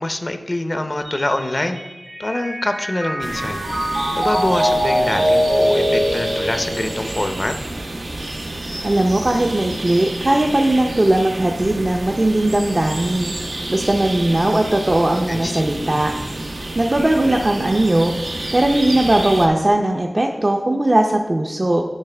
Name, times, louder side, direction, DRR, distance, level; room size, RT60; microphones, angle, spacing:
voice 1, 0.0-1.8 2.2-3.6 4.1-7.6 15.3-16.2, left 1 dB, 40° left, 7 dB, 0.6 m, -25 dB
Mallet percussion, 1.1-7.5, equal, 70° right, 1.6 m, -22 dB
the sound of deep forest - front, 3.2-19.5, right 2 dB, 90° right, 0.9 m, -29 dB
voice 2, 8.8-13.3 13.7-16.1 16.7-18.1 18.5-21.8, right 1 dB, 40° right, 0 dB, 0.6 m, -18 dB
10.5 x 5.4 x 3.3 m, 1.1 s
wide cardioid pair, 60°, 0 cm